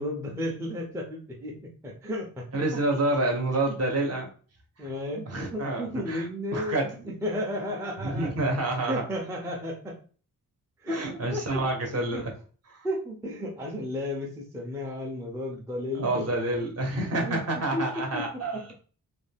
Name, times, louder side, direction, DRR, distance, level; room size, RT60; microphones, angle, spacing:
voice 1, 0.0-1.6 1.8-2.4 4.8-8.5 8.8-10.0 10.8-11.6 11.9-12.2 12.8-16.3 17.3-18.7, left 1 dB, 10° right, -2 dB, 0.4 m, -33 dB
voice 2, 2.5-4.3 4.8-4.9 5.3-6.3 6.5-7.0 8.0-9.0 10.9-12.3 12.7-12.9 16.0-18.6, right 2 dB, 45° right, 1 dB, 0.7 m, -28 dB
2.5 x 2.1 x 3.3 m, 0.40 s
wide cardioid pair, 165°, 35 cm